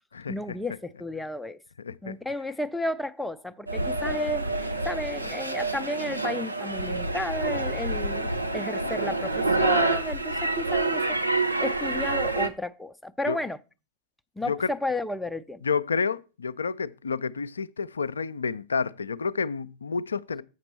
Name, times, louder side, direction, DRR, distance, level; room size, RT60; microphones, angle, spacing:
voice 1, 0.3-1.6 2.0-11.2 11.6-13.6 14.4-15.6, left 1 dB, 5° left, 0.5 m, -32 dB
voice 2, 1.8-2.1 13.3-13.4 14.5-14.7 15.6-20.4, left 5 dB, 75° left, 0.3 m, -29 dB
sound 1, 3.7-12.5, right 2 dB, 85° right, 0.7 m, -27 dB
7.9 x 5.9 x 4.2 m
figure-of-eight pair, 90°, 0 cm